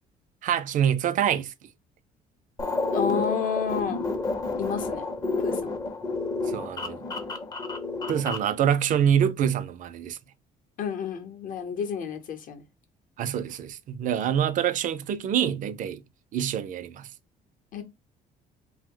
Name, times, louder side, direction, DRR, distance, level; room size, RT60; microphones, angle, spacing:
voice 1, 0.4-1.5 6.5-7.0 8.1-10.2 13.2-16.0 16.3-17.1, right 9 dB, 50° right, 0.4 m, -25 dB
sound 1, 2.6-8.5, left 3 dB, 20° left, 0.5 m, -30 dB
voice 2, 2.9-4.0 4.6-5.1 5.4-5.7 10.8-12.6 17.7-17.8, left 7 dB, 55° left, 0.8 m, -30 dB
2.7 x 2.1 x 3.6 m
cardioid pair, 110°, 17 cm